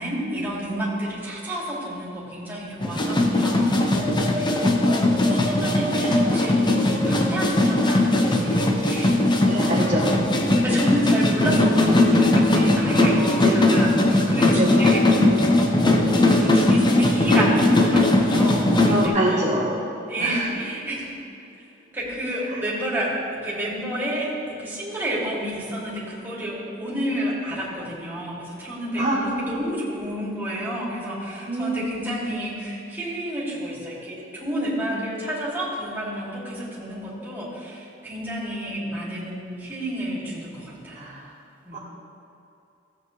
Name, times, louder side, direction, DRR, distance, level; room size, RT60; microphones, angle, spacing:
voice 1, 0.0-4.7 5.3-6.7 7.1-9.2 10.5-15.0 15.6-16.0 16.3-19.5 20.1-21.1 21.9-41.2 41.6-41.8, equal, 10° right, -7 dB, 2.6 m, -30 dB
sound 1, 2.8-19.1, left 1 dB, 25° left, 0.9 m, -19 dB
voice 2, 9.4-10.2 13.4-13.7 14.6-14.8 18.9-19.8 20.2-20.5 22.5-22.6 29.0-29.4 31.5-32.0 40.9-41.3 41.7-41.8, right 1 dB, 40° right, -6 dB, 1.1 m, -26 dB
16.0 x 8.1 x 3.3 m, 2.8 s
head